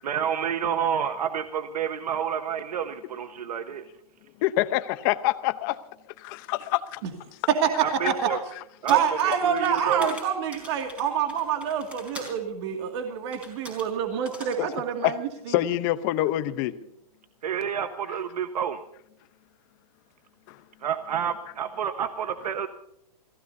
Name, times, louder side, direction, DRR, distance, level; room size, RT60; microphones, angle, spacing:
voice 1, 0.0-3.8 7.8-8.4 8.8-10.1 17.4-18.8 20.8-22.7, right 8 dB, 85° right, 8 dB, 1.2 m, -29 dB
voice 2, 4.4-5.8 6.2-7.0 14.6-14.7 15.0-15.1 15.5-16.8 20.5-20.6, left 15 dB, 30° left, 12 dB, 0.8 m, -26 dB
sound 1, 8.9-12.4 13.3-13.9 14.3-14.6, left 1 dB, 5° right, 4.3 m, -42 dB
voice 3, 8.9-15.1, right 8 dB, 45° right, 4 dB, 2.3 m, -27 dB
28.5 x 16.5 x 2.7 m, 0.76 s
hypercardioid pair, 160°, 20 cm